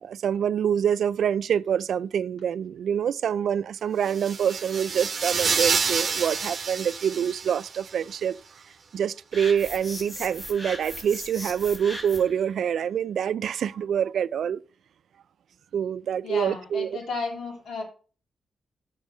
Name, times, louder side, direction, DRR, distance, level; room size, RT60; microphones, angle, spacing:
voice 1, 0.0-8.4 8.9-14.6 15.7-17.0, right 8 dB, 75° right, 0.4 m, -26 dB
sound 1, 4.1-7.9, right 5 dB, 45° right, 1.0 m, -28 dB
sound 2, 9.3-12.4, equal, 10° left, 3.4 m, -38 dB
voice 2, 16.2-17.8, left 3 dB, 75° left, 3.4 m, -33 dB
7.4 x 5.3 x 6.1 m
wide cardioid pair, 120°, 0 cm